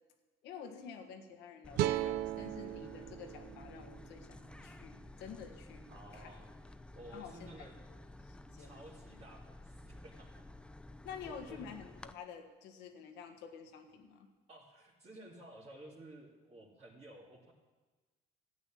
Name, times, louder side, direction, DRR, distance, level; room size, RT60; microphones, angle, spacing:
voice 1, 0.4-6.3 7.1-7.5 8.2-8.8 11.0-14.3, left 6 dB, 90° left, 6 dB, 1.6 m, -49 dB
sound 1, 1.6-12.1, left 1 dB, 5° left, 0.5 m, -53 dB
sound 2, 1.8-5.0, right 13 dB, 80° right, 0.5 m, -38 dB
voice 2, 5.9-6.5 7.0-7.8 8.6-10.5 11.2-11.6 14.5-17.5, right 1 dB, 40° right, -4 dB, 2.3 m, -54 dB
13.5 x 9.2 x 7.3 m, 1.3 s
cardioid pair, 110°, 17 cm